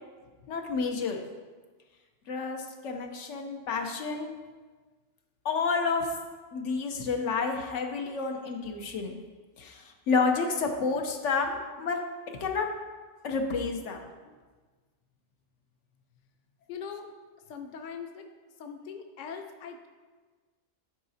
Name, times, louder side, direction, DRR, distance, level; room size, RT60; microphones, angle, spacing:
voice 1, 0.5-1.2 2.3-4.3 5.4-6.1 6.5-9.2 9.6-12.0 12.4-12.7 13.2-14.0, left 4 dB, 85° left, 3 dB, 1.1 m, -30 dB
voice 2, 16.7-17.1 17.5-18.3 18.6-19.9, left 6 dB, 50° left, 5 dB, 0.7 m, -41 dB
11.0 x 4.8 x 2.7 m, 1.4 s
omnidirectional pair, 1.2 m